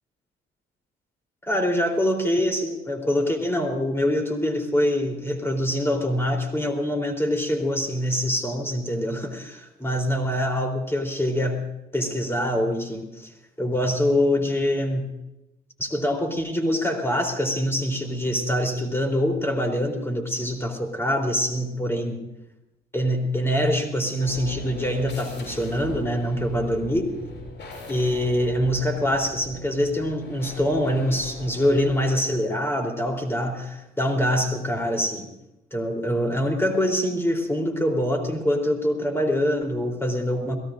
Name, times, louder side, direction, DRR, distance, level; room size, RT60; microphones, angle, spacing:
voice 1, 1.4-11.6 11.9-13.3 13.6-15.1 15.8-22.3 22.9-27.1 27.9-35.3 35.7-40.6, equal, 10° left, 3 dB, 3.6 m, -24 dB
sound 1, 24.2-32.2, left 2 dB, 65° left, 7.4 m, -39 dB
29.0 x 17.0 x 2.6 m, 0.89 s
cardioid pair, 90°, 20 cm